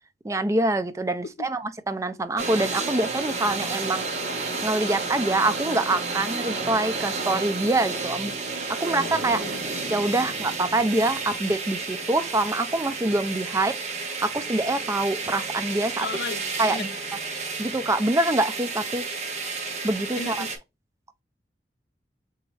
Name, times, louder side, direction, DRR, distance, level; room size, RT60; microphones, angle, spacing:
voice 1, 0.2-4.0 4.6-8.3 8.7-13.8 14.0-16.1 16.6-16.9 17.3-19.0 19.8-20.5, right 2 dB, 15° right, 0.4 m, -25 dB
sound 1, 2.4-20.6, right 4 dB, 40° right, 1.2 m, -31 dB
voice 2, 9.3-9.6 16.0-16.9 20.2-20.5, left 4 dB, 65° left, 0.5 m, -35 dB
4.1 x 3.5 x 3.2 m
head